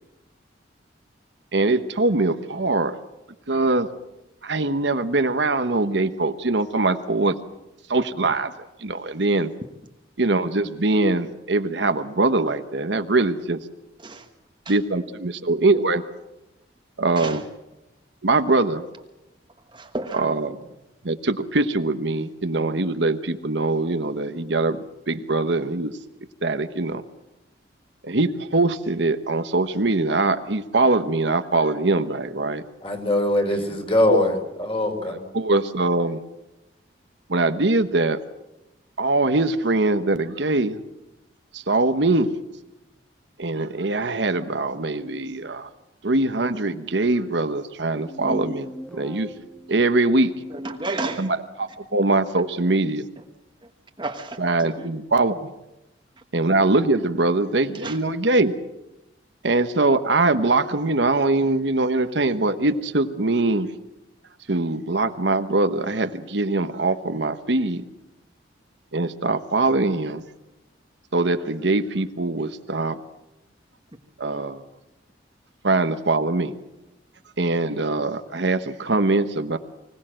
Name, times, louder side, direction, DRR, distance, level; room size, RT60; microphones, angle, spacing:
voice 1, 1.5-3.0 3.5-3.9 4.4-7.4 7.9-8.5 8.8-9.5 10.2-13.6 14.7-16.0 17.0-17.4 18.2-18.8 20.1-20.6 21.0-26.0 26.4-27.0 28.0-32.6 33.5-33.8 34.1-34.3 35.1-36.2 37.3-38.2 39.0-40.8 41.5-42.4 43.4-45.7 46.0-49.3 49.7-50.3 51.2-53.1 54.4-55.5 56.3-58.5 59.4-63.7 64.5-67.8 68.9-70.2 71.1-73.0 74.2-74.6 75.6-76.5 77.4-79.6, right 2 dB, 70° right, 1.1 m, -22 dB
voice 2, 19.7-20.3 50.6-51.3 54.0-54.8 57.8-58.0, right 2 dB, 25° right, 1.3 m, -31 dB
voice 3, 32.8-35.2, left 1 dB, 30° left, 3.7 m, -22 dB
sound 1, 47.9-51.4, left 1 dB, 5° left, 1.3 m, -37 dB
25.0 x 17.5 x 7.7 m
head